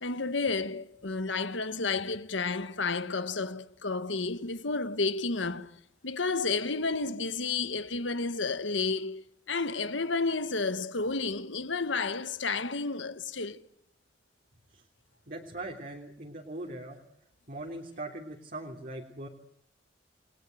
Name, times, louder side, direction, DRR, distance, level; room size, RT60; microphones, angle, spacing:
voice 1, 0.0-5.8 6.0-13.6, left 4 dB, 90° left, 1.5 m, -31 dB
voice 2, 15.3-17.0 17.5-19.3, right 2 dB, 50° right, 3.3 m, -40 dB
29.5 x 21.5 x 7.9 m
head